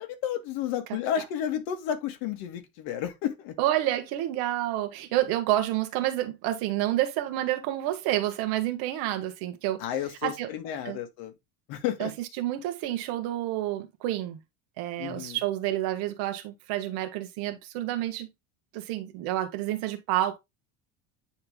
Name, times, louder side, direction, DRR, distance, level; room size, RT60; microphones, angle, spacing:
voice 1, 0.0-3.6 9.8-11.3 11.7-12.1 15.0-15.4, left 10 dB, 75° left, 1.9 m, -32 dB
voice 2, 3.6-9.8 10.2-10.5 10.8-11.0 12.0-14.4 14.8-18.3 18.7-20.4, right 14 dB, 70° right, 1.3 m, -29 dB
9.5 x 3.3 x 3.6 m
cardioid pair, 160°, 37 cm